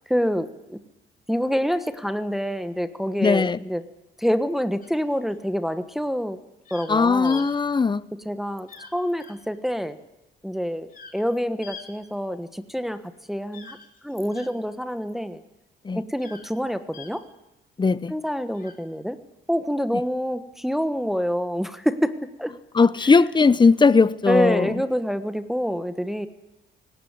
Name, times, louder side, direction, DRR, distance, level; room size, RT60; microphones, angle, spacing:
voice 1, 0.1-0.8 1.3-3.8 4.2-6.4 6.7-7.4 8.2-10.0 10.4-10.9 11.1-13.0 13.3-13.8 14.0-15.4 15.9-17.2 18.1-19.2 19.5-22.5 23.2-23.3 24.3-26.3, equal, ahead, 1.3 m, -26 dB
voice 2, 3.2-3.6 6.9-8.0 15.9-16.0 17.8-18.1 22.7-24.7, left 4 dB, 25° left, 0.8 m, -18 dB
sound 1, 4.8-5.3 6.7-6.9 7.2-7.5 8.7-8.9 9.2-9.3 10.9-11.2 11.6-11.9 13.5-14.5 16.2-16.5 16.9-17.1 18.5-18.7, left 6 dB, 45° left, 3.7 m, -43 dB
18.0 x 17.5 x 9.7 m
cardioid pair, 90°, 20 cm